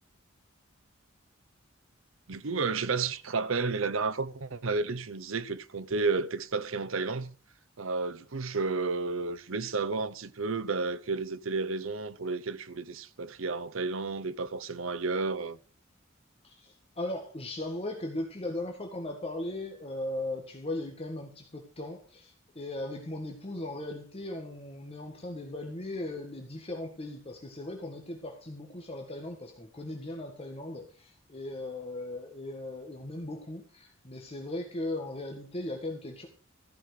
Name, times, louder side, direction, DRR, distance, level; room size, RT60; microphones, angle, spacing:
voice 1, 2.3-7.3 7.8-15.6, right 4 dB, 70° right, 0.8 m, -32 dB
voice 2, 16.4-36.3, left 1 dB, 30° left, 1.6 m, -38 dB
14.5 x 5.8 x 6.5 m
head